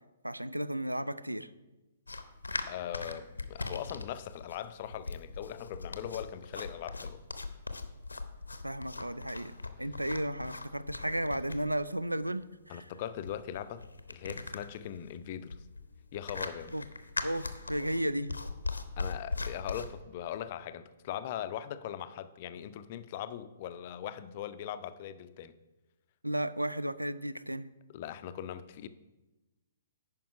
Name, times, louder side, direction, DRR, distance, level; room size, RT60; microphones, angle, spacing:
voice 1, 0.2-1.5 8.6-12.9 16.7-16.8 17.2-18.3 26.2-27.7, right 1 dB, 90° right, 0.3 m, -34 dB
sound 1, 2.1-19.9, left 3 dB, 80° left, 0.7 m, -40 dB
voice 2, 2.7-7.2 12.7-15.6 16.1-16.8 19.0-25.5 27.9-28.9, left 10 dB, 40° left, 0.4 m, -40 dB
9.3 x 5.3 x 4.7 m
figure-of-eight pair, 120°, 0 cm